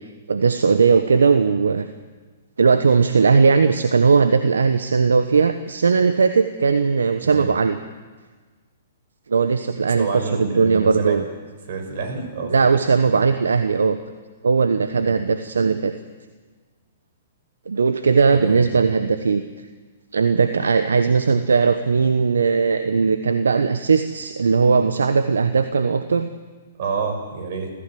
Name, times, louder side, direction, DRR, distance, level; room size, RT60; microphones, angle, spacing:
voice 1, 0.0-1.9 2.6-7.8 9.3-11.2 12.5-14.0 14.4-15.9 17.7-19.4 20.1-26.3, right 5 dB, 80° right, 9 dB, 1.1 m, -18 dB
voice 2, 9.9-11.2 11.7-12.5 13.0-13.2 14.9-15.1 18.3-18.6 26.8-27.7, right 4 dB, 55° right, 5 dB, 6.3 m, -28 dB
27.5 x 15.0 x 7.8 m, 1.4 s
hypercardioid pair, 120°, 0 cm